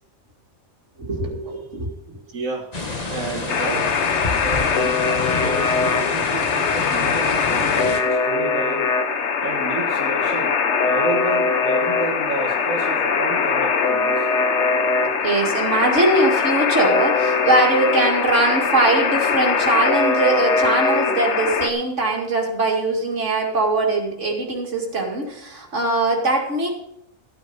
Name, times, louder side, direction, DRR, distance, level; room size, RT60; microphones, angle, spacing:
voice 1, 1.0-2.2 15.2-26.7, right 2 dB, 60° right, 0 dB, 2.7 m, -21 dB
voice 2, 2.3-2.7 3.1-3.9 4.3-10.5 10.8-14.3, right 2 dB, 85° right, -2 dB, 2.1 m, -31 dB
sound 1, 2.7-8.0, left 3 dB, 30° left, 1.5 m, -29 dB
Alarm, 3.5-21.7, left 5 dB, 60° left, 1.2 m, -21 dB
14.5 x 9.5 x 5.5 m, 0.76 s
omnidirectional pair, 1.4 m